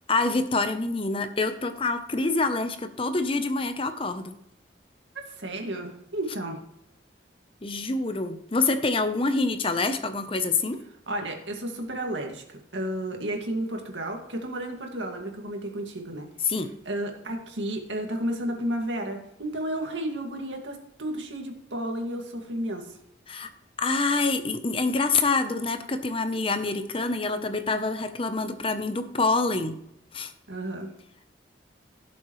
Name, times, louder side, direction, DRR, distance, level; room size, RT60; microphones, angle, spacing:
voice 1, 0.1-4.4 7.6-10.8 16.5-16.7 23.3-23.5 23.8-29.8 30.1-30.3, left 3 dB, 30° left, 9 dB, 0.8 m, -26 dB
voice 2, 5.1-6.6 11.1-16.5 16.9-23.0 30.5-30.9, right 1 dB, 85° right, 2 dB, 2.2 m, -32 dB
17.0 x 7.2 x 3.2 m, 0.79 s
head